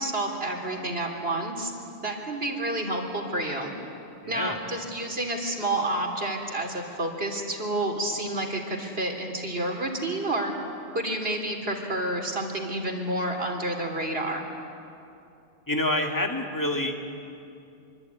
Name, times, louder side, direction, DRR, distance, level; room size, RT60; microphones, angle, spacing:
voice 1, 0.0-1.7 2.0-3.7 4.3-10.5 10.9-14.4, right 1 dB, 70° right, 2 dB, 3.4 m, -29 dB
voice 2, 4.2-4.6 15.7-17.0, left 1 dB, 20° left, 2 dB, 2.2 m, -27 dB
25.0 x 23.5 x 9.6 m, 2.7 s
omnidirectional pair, 1.1 m